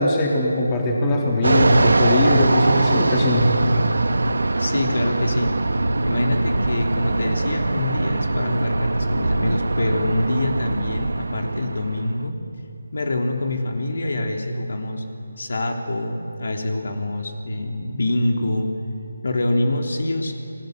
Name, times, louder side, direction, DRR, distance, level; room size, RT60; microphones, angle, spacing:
voice 1, 0.0-3.5, left 1 dB, 20° left, -1 dB, 3.2 m, -20 dB
Fixed-wing aircraft airplane, 1.4-12.3, right 2 dB, 90° right, 1.4 m, -22 dB
voice 2, 4.6-5.6 6.0-12.4 12.9-15.0 15.4-18.7 19.2-20.3, left 1 dB, 65° left, 3 dB, 3.3 m, -25 dB
30.0 x 21.5 x 7.9 m, 2.7 s
figure-of-eight pair, 170°, 0 cm